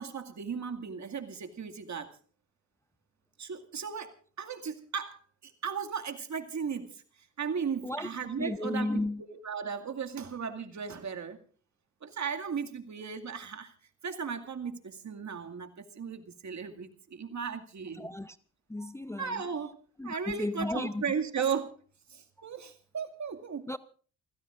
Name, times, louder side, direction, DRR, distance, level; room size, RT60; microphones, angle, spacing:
voice 1, 0.0-2.1 3.4-7.0 7.4-11.4 12.0-13.7 14.0-18.1 19.2-19.8 20.0-21.7 22.1-23.7, right 6 dB, 50° right, 2.2 m, -36 dB
voice 2, 8.4-9.2 18.0-18.4 18.7-19.4 20.0-21.0 23.7-23.8, left 1 dB, 10° left, 0.7 m, -34 dB
29.0 x 15.5 x 2.5 m
hypercardioid pair, 45°, 36 cm